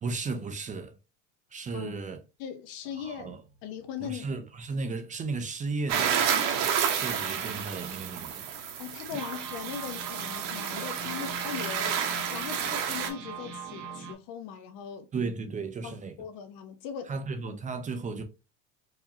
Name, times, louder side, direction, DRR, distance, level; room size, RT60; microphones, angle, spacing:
voice 1, 0.0-0.9 1.5-2.2 3.0-3.4 4.0-6.3 7.0-8.5 15.1-16.2 17.1-18.2, right 4 dB, 20° right, 0.5 m, -34 dB
voice 2, 2.4-3.3 3.6-4.3 8.8-12.0 12.3-15.1 15.8-17.1, left 8 dB, 65° left, 1.0 m, -39 dB
sound 1, 3.0-6.2 6.7-6.8 7.0-7.3 7.9-8.0 9.1-14.1, right 5 dB, 85° right, 1.2 m, -42 dB
sound 2, 5.9-13.1, right 8 dB, 65° right, 1.1 m, -30 dB
4.7 x 2.7 x 2.7 m
supercardioid pair, 130°, 37 cm